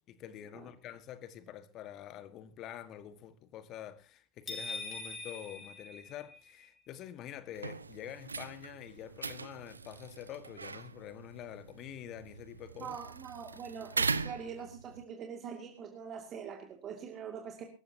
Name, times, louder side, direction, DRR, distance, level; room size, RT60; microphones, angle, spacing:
voice 1, 0.1-13.0, left 10 dB, 35° left, 1.6 m, -47 dB
sound 1, 4.5-6.6, left 3 dB, 20° left, 5.2 m, -42 dB
sound 2, 7.5-15.0, right 4 dB, 75° right, 0.6 m, -40 dB
voice 2, 12.8-17.6, right 7 dB, 30° right, 2.4 m, -43 dB
23.5 x 14.5 x 2.8 m
figure-of-eight pair, 90°, 0 cm